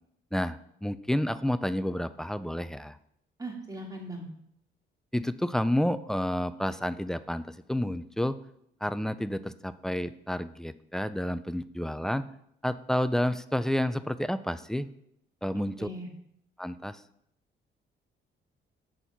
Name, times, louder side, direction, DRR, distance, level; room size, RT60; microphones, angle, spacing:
voice 1, 0.3-3.0 5.1-8.4 8.8-12.2 12.6-14.9 15.4-15.9 16.6-17.0, left 1 dB, ahead, 13 dB, 0.4 m, -30 dB
voice 2, 3.4-4.3 15.5-16.1, right 1 dB, 20° right, 1 dB, 2.1 m, -39 dB
7.6 x 4.1 x 6.8 m, 0.73 s
cardioid pair, 90°, 20 cm